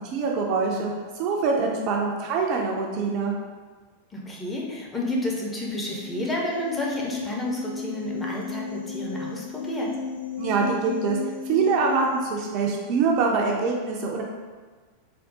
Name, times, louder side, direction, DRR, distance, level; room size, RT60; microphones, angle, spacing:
voice 1, 0.1-3.3 10.4-11.2 11.5-14.2, right 4 dB, 40° right, 0 dB, 0.3 m, -24 dB
voice 2, 4.1-9.9, left 1 dB, 10° left, -3 dB, 0.6 m, -30 dB
sound 1, 5.5-12.3, left 5 dB, 60° left, 0.6 m, -34 dB
3.4 x 2.1 x 2.7 m, 1.4 s
figure-of-eight pair, 90°, 0 cm